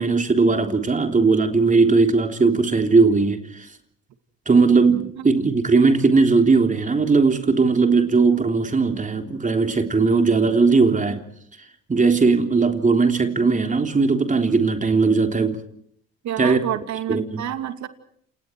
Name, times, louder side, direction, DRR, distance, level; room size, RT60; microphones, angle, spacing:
voice 1, 0.0-3.7 4.5-11.2 11.9-15.6 16.4-16.6 17.1-17.4, right 4 dB, 25° right, 3.5 m, -18 dB
voice 2, 16.2-17.9, right 10 dB, 65° right, 2.6 m, -28 dB
28.5 x 28.5 x 4.6 m
supercardioid pair, 85°, 30 cm